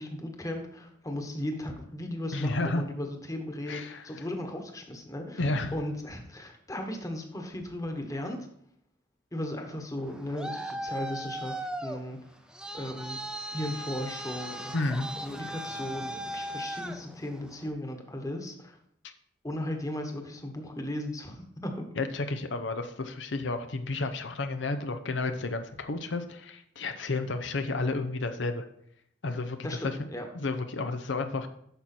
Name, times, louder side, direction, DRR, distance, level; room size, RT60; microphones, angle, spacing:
voice 1, 0.0-8.5 9.3-12.2 12.7-13.2 13.5-14.7 15.2-18.8 19.4-21.9 29.6-30.3, left 1 dB, 20° left, 4 dB, 1.2 m, -36 dB
voice 2, 2.3-2.8 3.7-4.0 5.4-5.7 14.7-15.1 19.0-19.1 22.0-28.6 29.2-30.0 30.3-31.5, left 3 dB, 85° left, 8 dB, 0.7 m, -31 dB
Traffic noise roadway noise, 10.0-17.7, right 1 dB, 5° right, 0.6 m, -38 dB
9.1 x 6.2 x 4.3 m, 0.70 s
head